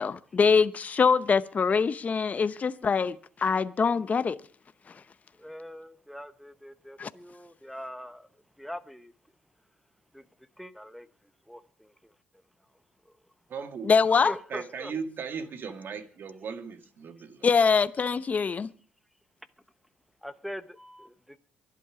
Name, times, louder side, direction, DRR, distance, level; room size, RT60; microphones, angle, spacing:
voice 1, 0.0-4.4 4.9-5.0 7.0-7.1 13.8-14.3 17.4-18.7, left 5 dB, 35° left, 0.8 m, -24 dB
voice 2, 5.3-9.1 10.1-11.1 11.5-12.2 13.0-13.2 14.1-15.0 20.2-21.4, equal, ahead, 1.0 m, -42 dB
voice 3, 13.5-13.9 14.5-17.5, right 6 dB, 55° right, 2.1 m, -37 dB
24.0 x 8.5 x 5.0 m
supercardioid pair, 75°, 4 cm